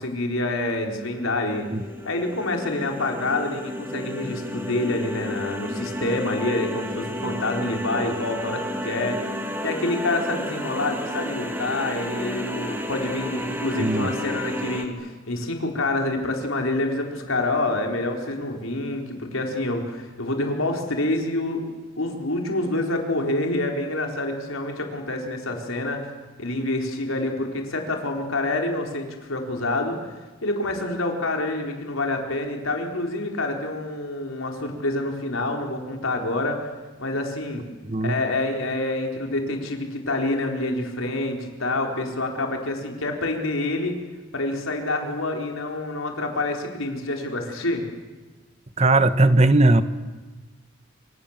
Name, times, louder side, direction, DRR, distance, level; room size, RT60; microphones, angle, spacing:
voice 1, 0.0-1.7 2.0-9.2 9.6-26.1 26.4-30.1 30.4-36.7 37.0-37.6 38.0-44.0 44.3-47.8, left 2 dB, 90° left, 2 dB, 4.3 m, -27 dB
sound 1, 1.5-14.8, equal, 10° right, 2.2 m, -32 dB
voice 2, 13.8-14.1 37.8-38.2 48.8-49.8, right 2 dB, 30° right, 12 dB, 1.1 m, -18 dB
27.0 x 26.0 x 7.4 m, 1.3 s
head